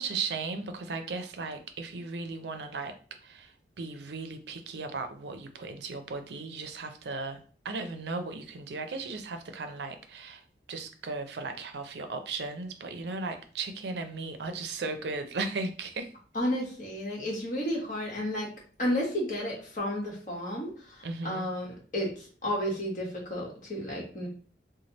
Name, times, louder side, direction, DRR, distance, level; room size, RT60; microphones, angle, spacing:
voice 1, 0.0-2.9 3.2-16.1 21.0-21.5, right 3 dB, 75° right, 7 dB, 0.5 m, -36 dB
voice 2, 16.3-18.5 18.8-24.3, equal, 45° left, -2 dB, 1.3 m, -32 dB
3.2 x 2.2 x 4.0 m, 0.42 s
head